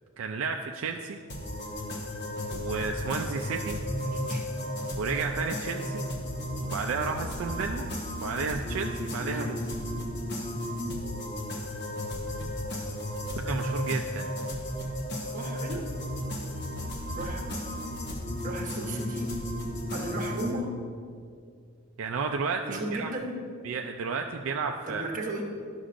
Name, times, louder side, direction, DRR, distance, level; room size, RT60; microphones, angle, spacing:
voice 1, 0.2-1.2 2.5-3.8 5.0-6.0 6.6-7.9 8.2-9.6 13.4-14.3 22.0-23.1 23.6-25.0, right 5 dB, 70° right, 3 dB, 0.4 m, -32 dB
sound 1, 1.3-20.5, equal, 55° left, 1.0 m, -34 dB
voice 2, 4.0-4.5 9.1-9.5 15.3-15.9 17.2-17.4 18.4-19.4 19.9-20.7 22.6-23.4 24.9-25.4, right 1 dB, 40° right, 1 dB, 1.0 m, -35 dB
11.5 x 6.1 x 2.5 m, 2.2 s
head